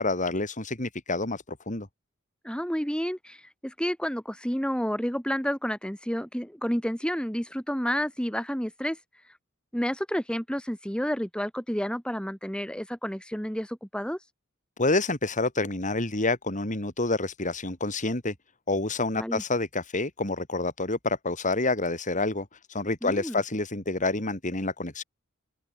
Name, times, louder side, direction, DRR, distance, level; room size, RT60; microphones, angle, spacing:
voice 1, 0.0-1.9 14.8-18.3 18.7-25.0, left 2 dB, 40° left, 4.0 m, -28 dB
voice 2, 2.4-9.0 9.7-14.2 19.2-19.4 23.0-23.3, equal, 5° left, 6.7 m, -30 dB
open air
head